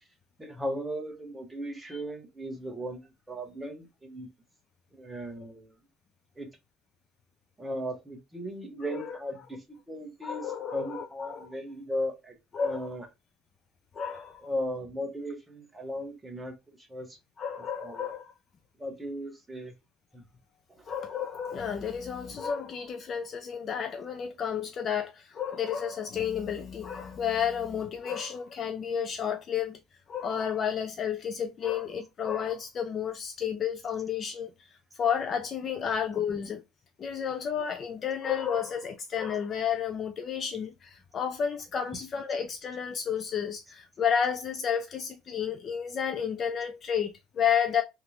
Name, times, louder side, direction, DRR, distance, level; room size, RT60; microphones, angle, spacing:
voice 1, 0.4-4.3 4.9-5.8 6.4-6.5 7.6-13.1 14.4-17.2 17.6-18.1 18.8-19.7 20.1-20.3 20.7-20.9, equal, 5° right, 0.7 m, -37 dB
voice 2, 10.2-11.5 12.5-12.9 13.9-14.4 17.4-18.3 20.9-29.8 30.1-34.7 35.0-36.6 37.0-47.8, left 8 dB, 30° left, 0.3 m, -31 dB
3.3 x 2.4 x 2.8 m
cardioid pair, 170°, 0 cm